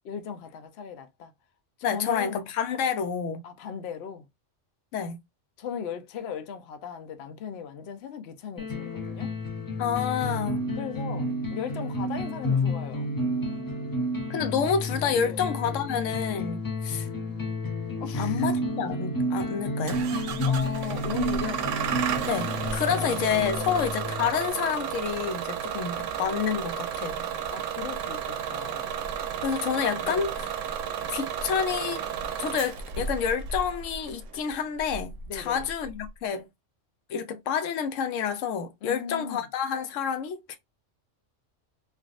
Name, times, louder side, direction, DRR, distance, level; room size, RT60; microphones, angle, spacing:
voice 1, 0.0-1.3 1.9-2.4 3.4-4.3 5.6-9.3 10.8-13.1 15.2-15.4 18.0-18.5 20.4-21.7 22.9-23.1 23.5-23.7 27.5-28.9 30.0-30.3 35.3-35.7 38.8-39.4, left 7 dB, 65° left, 0.8 m, -38 dB
voice 2, 1.8-3.4 4.9-5.2 9.8-10.6 14.3-17.1 18.2-20.0 22.2-27.2 29.4-30.3 31.1-32.0 32.4-36.5 37.1-40.6, left 7 dB, 90° left, 1.0 m, -29 dB
sound 1, 8.6-24.5, left 1 dB, 25° left, 0.5 m, -30 dB
Bus / Engine starting, 19.9-36.1, right 8 dB, 85° right, 0.9 m, -33 dB
3.3 x 2.5 x 2.4 m
omnidirectional pair, 1.3 m